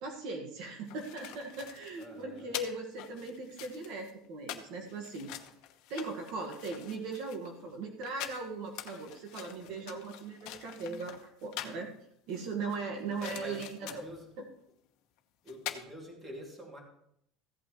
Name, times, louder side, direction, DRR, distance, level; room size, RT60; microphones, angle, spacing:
voice 1, 0.0-5.3 5.9-11.9 12.3-14.0 14.4-14.5, right 3 dB, 60° right, 2 dB, 1.5 m, -39 dB
sound 1, 0.6-11.9 12.3-14.2 15.2-15.3 15.5-15.8, left 12 dB, 60° left, 1.0 m, -45 dB
voice 2, 2.0-2.5 9.6-9.9 13.2-14.3 15.4-16.8, equal, 20° right, 0 dB, 2.5 m, -46 dB
15.5 x 8.5 x 3.1 m, 0.74 s
cardioid pair, 150°, 0 cm